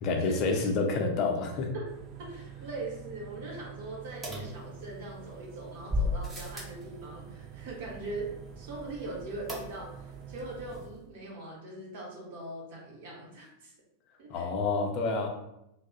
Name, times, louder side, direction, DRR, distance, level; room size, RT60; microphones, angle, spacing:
voice 1, 0.0-1.7 14.3-15.3, left 3 dB, 40° left, 2 dB, 0.5 m, -28 dB
voice 2, 1.7-13.7 14.2-14.5, right 2 dB, 50° right, -3 dB, 1.0 m, -41 dB
sound 1, 1.8-10.9, right 7 dB, 35° right, 0.3 m, -47 dB
sound 2, 4.2-5.2 5.9-6.8 9.5-10.1 10.4-10.5 10.7-10.8, left 2 dB, 15° right, 0.8 m, -34 dB
2.3 x 2.0 x 3.8 m, 0.86 s
figure-of-eight pair, 90°, 0 cm